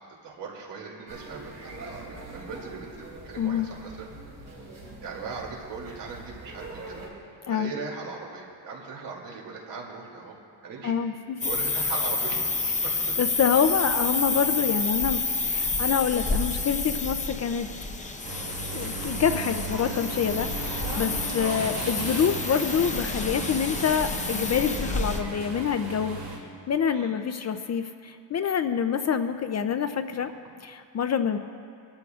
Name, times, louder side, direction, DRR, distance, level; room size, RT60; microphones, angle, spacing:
voice 1, 0.2-4.1 4.5-4.6 5.0-7.0 7.5-10.4 10.6-11.0 11.4-13.2 15.6-15.9 21.4-21.6 26.9-27.1 30.2-30.3, right 4 dB, 70° right, -1 dB, 2.7 m, -39 dB
sound 1, 1.1-7.1, right 2 dB, 35° right, 3.7 m, -43 dB
voice 2, 3.4-3.7 7.5-7.7 10.8-11.4 13.2-17.7 18.7-30.3 30.6-31.4, left 7 dB, 40° left, 9 dB, 0.4 m, -26 dB
sound 2, 11.4-25.2, left 3 dB, 15° left, 0.7 m, -29 dB
sound 3, 18.2-26.4, right 4 dB, 50° right, 2.5 m, -36 dB
25.0 x 13.0 x 2.4 m, 2.4 s
cardioid pair, 150°, 44 cm